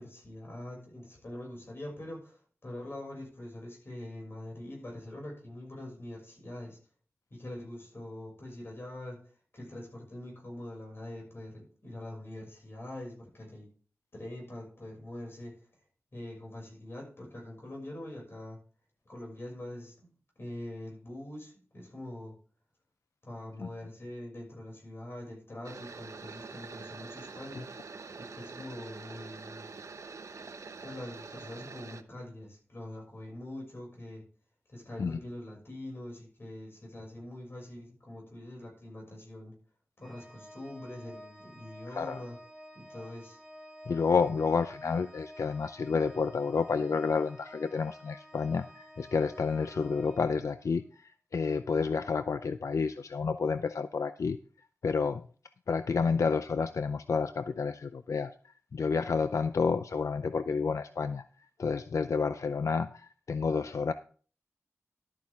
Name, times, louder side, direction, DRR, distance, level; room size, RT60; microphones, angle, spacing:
voice 1, 0.0-6.8 7.3-9.2 9.5-13.7 14.1-15.6 16.1-18.6 19.0-22.3 23.2-27.7 28.2-29.7 30.8-34.2 34.7-39.5 40.0-42.4 42.7-43.4, left 1 dB, 50° left, 0 dB, 6.4 m, -44 dB
sound 1, 25.6-32.0, right 4 dB, 85° right, 0.8 m, -45 dB
Organ, 40.0-50.9, equal, ahead, 1.9 m, -51 dB
voice 2, 43.9-54.4 54.8-55.2 55.7-61.2 61.6-63.9, left 5 dB, 85° left, 11 dB, 0.5 m, -30 dB
12.5 x 9.1 x 3.6 m, 0.42 s
wide cardioid pair, 90°, 5 cm